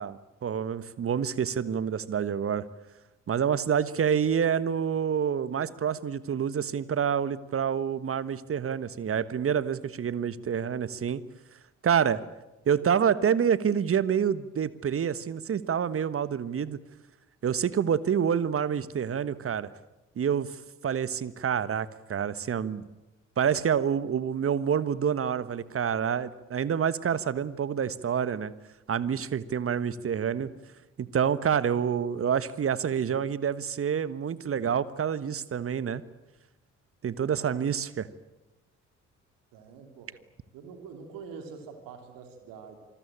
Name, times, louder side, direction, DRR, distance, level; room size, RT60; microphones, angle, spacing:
voice 1, 0.0-2.6 3.3-11.2 11.8-12.2 12.7-16.8 17.4-19.7 20.2-20.5 20.8-22.8 23.4-28.5 28.9-30.5 31.0-36.0 37.0-38.1, right 8 dB, 35° right, 17 dB, 1.3 m, -27 dB
voice 2, 37.2-37.6 39.5-40.2 40.5-42.8, right 5 dB, 60° right, 6 dB, 3.1 m, -45 dB
27.0 x 20.5 x 8.8 m, 1.0 s
figure-of-eight pair, 45°, 37 cm